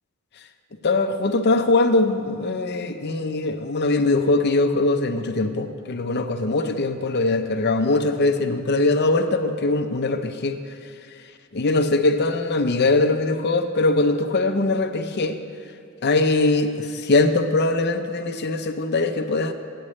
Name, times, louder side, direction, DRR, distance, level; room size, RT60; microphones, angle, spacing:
voice 1, 0.8-10.6 11.5-15.4 16.0-19.5, left 2 dB, 45° left, 6 dB, 0.6 m, -21 dB
16.5 x 10.0 x 3.2 m, 2.4 s
head